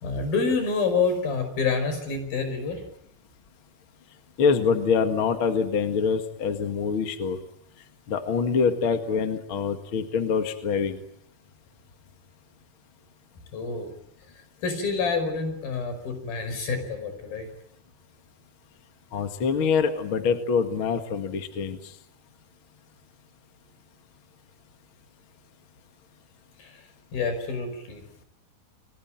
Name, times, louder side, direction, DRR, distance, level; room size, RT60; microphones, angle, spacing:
voice 1, 0.0-2.8 13.5-13.9 14.6-17.5 26.6-28.0, left 4 dB, 75° left, 8 dB, 7.0 m, -28 dB
voice 2, 4.4-7.4 8.1-11.0 19.1-21.8, left 5 dB, 40° left, 6 dB, 2.2 m, -25 dB
29.5 x 21.0 x 8.9 m, 0.75 s
omnidirectional pair, 4.2 m